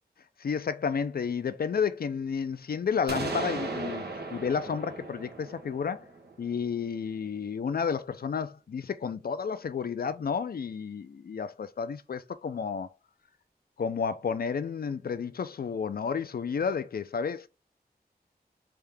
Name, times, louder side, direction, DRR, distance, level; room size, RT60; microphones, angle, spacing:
voice 1, 0.4-4.0 4.3-6.0 6.4-12.9 13.8-17.5, left 6 dB, 65° left, 0.4 m, -31 dB
sound 1, 3.1-6.9, right 3 dB, 85° right, 1.0 m, -37 dB
3.5 x 2.7 x 3.4 m
wide cardioid pair, 85°, 17 cm